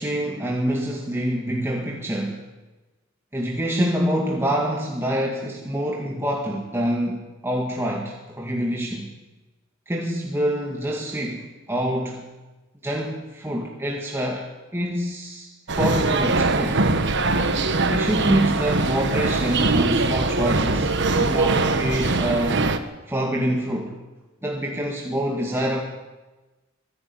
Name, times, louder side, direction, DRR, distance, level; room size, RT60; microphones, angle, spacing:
voice 1, 0.0-2.4 3.3-9.1 9.9-12.3 12.8-14.4 14.7-16.8 17.9-22.7 23.1-24.0 24.4-25.8, equal, 10° right, -1 dB, 2.0 m, -26 dB
sound 1, 15.7-22.8, right 3 dB, 60° right, 1.4 m, -22 dB
25.0 x 11.5 x 9.4 m, 1.1 s
head